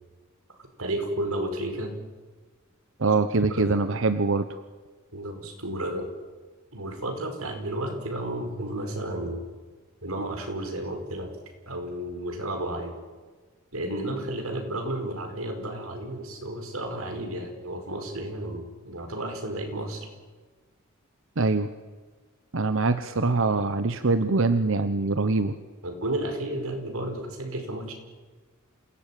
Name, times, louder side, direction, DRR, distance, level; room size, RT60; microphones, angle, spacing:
voice 1, 0.8-1.9 3.5-3.7 5.1-6.1 6.7-9.4 10.0-11.3 11.7-12.9 13.7-20.1 25.8-27.9, right 1 dB, 90° right, 4 dB, 5.1 m, -32 dB
voice 2, 3.0-4.5 21.4-21.7 22.5-25.6, right 3 dB, 65° right, 11 dB, 0.9 m, -23 dB
27.5 x 17.0 x 9.1 m, 1.4 s
head